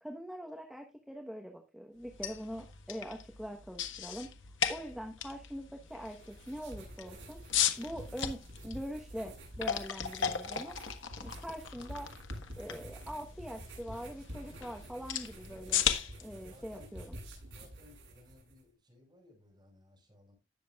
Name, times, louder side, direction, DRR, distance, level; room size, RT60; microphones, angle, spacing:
voice 1, 0.0-4.3 4.7-7.4 7.8-10.8 11.2-12.1 12.6-15.8 16.2-17.2, equal, ahead, 2 dB, 1.1 m, -43 dB
sound 1, 2.0-17.9, left 8 dB, 90° left, 1.4 m, -38 dB
sound 2, 5.9-18.6, right 1 dB, 70° right, 7.8 m, -49 dB
voice 2, 16.5-16.9 17.5-20.4, left 2 dB, 25° right, 0 dB, 5.8 m, -60 dB
19.0 x 7.0 x 2.4 m, 0.26 s
head